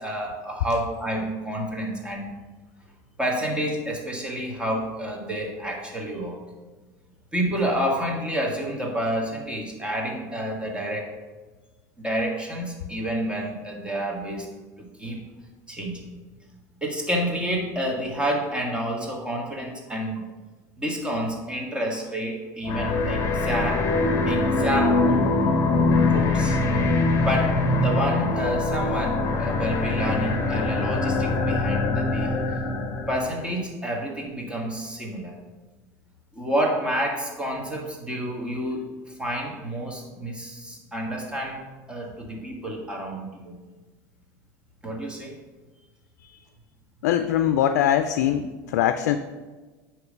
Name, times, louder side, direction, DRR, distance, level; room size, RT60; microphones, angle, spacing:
voice 1, 0.0-2.3 3.2-6.4 7.3-11.1 12.0-14.5 14.8-15.2 15.7-16.1 16.8-20.3 20.8-23.9 24.3-25.4 26.1-26.6 27.2-32.4 33.1-35.4 36.3-38.9 39.2-43.6 44.8-45.3, equal, 10° right, -1 dB, 1.6 m, -29 dB
sound 1, 22.6-33.3, left 3 dB, 40° left, 1.0 m, -23 dB
voice 2, 47.0-49.2, left 10 dB, 85° left, 9 dB, 0.4 m, -22 dB
9.3 x 3.2 x 5.1 m, 1.3 s
supercardioid pair, 100°, 9 cm